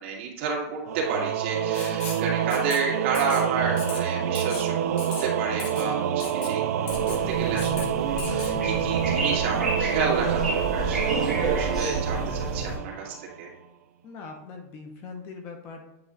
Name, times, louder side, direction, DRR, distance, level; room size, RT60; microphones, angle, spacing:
voice 1, 0.0-13.5, right 4 dB, 50° right, -2 dB, 2.0 m, -31 dB
Singing / Musical instrument, 0.9-13.3, right 9 dB, 80° right, 0.4 m, -27 dB
Writing, 1.7-2.3 2.5-2.8 3.1-3.4 3.8-4.0 4.4-4.7 5.0-5.3 5.6-5.9 6.2-6.5 6.9-7.2 7.6-7.9 8.2-8.5, left 5 dB, 45° left, 1.5 m, -38 dB
sound 1, 6.9-12.8, right 2 dB, ahead, 1.8 m, -30 dB
voice 2, 14.0-15.9, left 4 dB, 25° left, 4 dB, 0.7 m, -41 dB
8.7 x 3.1 x 3.9 m, 0.95 s
supercardioid pair, 175°, 8 cm